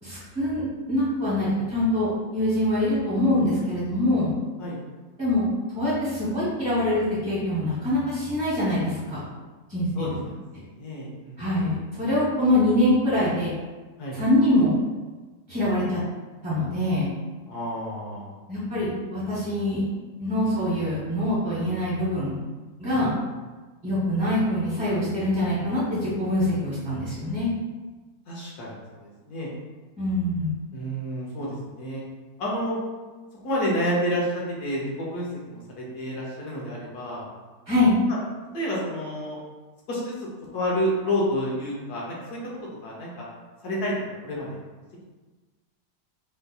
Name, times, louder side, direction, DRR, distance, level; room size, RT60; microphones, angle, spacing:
voice 1, 0.0-0.6 0.9-4.3 5.2-5.5 5.7-9.2 9.7-10.2 11.4-13.5 14.1-14.8 15.5-16.0 16.4-17.1 18.5-19.8 20.2-22.3 22.8-23.1 23.8-27.5 30.0-30.5 37.7-37.9, left 1 dB, 35° right, -9 dB, 1.3 m, -24 dB
voice 2, 10.8-11.4 14.0-14.2 17.5-18.3 22.9-23.1 28.3-29.5 30.7-32.0 32.4-32.8 33.4-37.3 38.5-39.4 39.9-40.3 40.5-42.4 42.8-43.3 43.6-43.9 44.2-44.6, equal, 75° left, -4 dB, 1.3 m, -29 dB
4.4 x 2.6 x 2.3 m, 1.3 s
omnidirectional pair, 1.7 m